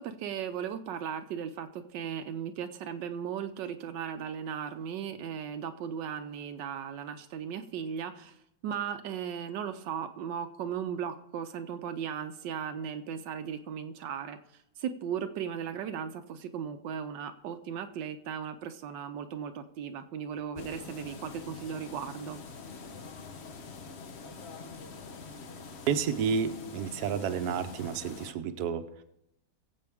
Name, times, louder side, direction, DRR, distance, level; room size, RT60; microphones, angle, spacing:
voice 1, 0.0-8.4 8.6-14.4 14.8-22.4, right 8 dB, 90° right, 8 dB, 1.4 m, -37 dB
sound 1, 20.6-28.3, left 4 dB, 45° left, 1.0 m, -45 dB
voice 2, 25.9-29.0, right 7 dB, 70° right, 8 dB, 1.2 m, -31 dB
22.0 x 7.7 x 3.5 m, 0.84 s
omnidirectional pair, 1.9 m